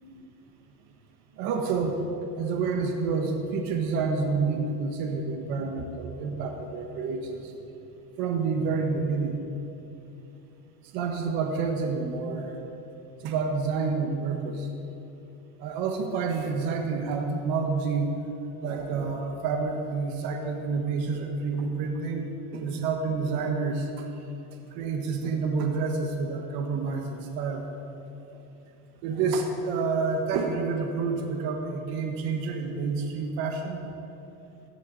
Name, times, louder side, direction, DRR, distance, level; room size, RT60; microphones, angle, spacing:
voice 1, 1.4-2.0 2.4-7.5 8.2-9.4 10.9-12.5 13.2-14.7 15.6-18.2 18.6-24.0 24.7-27.6 29.0-33.8, right 4 dB, 50° right, 3 dB, 1.5 m, -28 dB
17.0 x 11.0 x 4.1 m, 2.9 s
cardioid pair, 165°, 45 cm